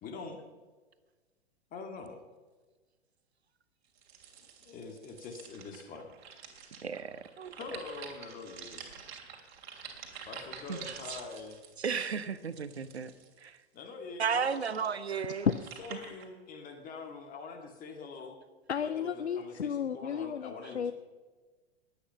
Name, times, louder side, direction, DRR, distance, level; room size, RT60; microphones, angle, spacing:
voice 1, 0.0-0.4 1.7-2.2 4.6-6.1 7.6-8.8 10.3-11.6 13.7-14.9 15.4-18.4 18.8-20.9, left 4 dB, 25° left, 3 dB, 2.0 m, -44 dB
sound 1, 4.0-13.6 14.3-16.2, right 7 dB, 45° right, 2.9 m, -49 dB
voice 2, 6.8-7.5 10.7-11.2 11.8-13.1 13.4-13.6 14.2-15.5, right 6 dB, 75° right, 14 dB, 1.0 m, -34 dB
voice 3, 18.7-20.9, left 8 dB, 80° left, 13 dB, 0.6 m, -34 dB
21.0 x 8.9 x 5.7 m, 1.3 s
figure-of-eight pair, 100°, 33 cm